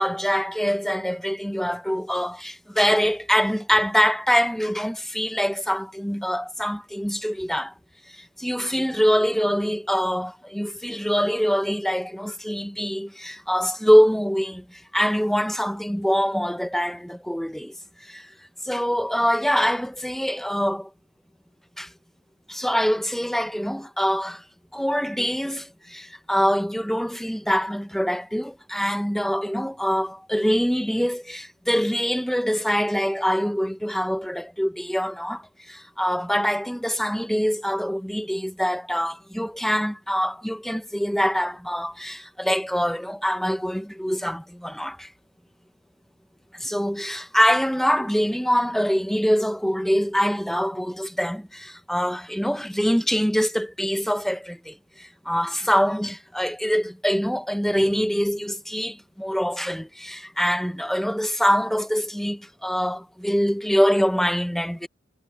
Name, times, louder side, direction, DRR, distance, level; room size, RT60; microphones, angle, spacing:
voice 1, 0.0-7.7 8.1-17.8 18.0-18.3 18.6-20.9 21.8-21.9 22.5-24.4 24.7-45.1 46.5-64.9, equal, ahead, 1.0 m, -24 dB
head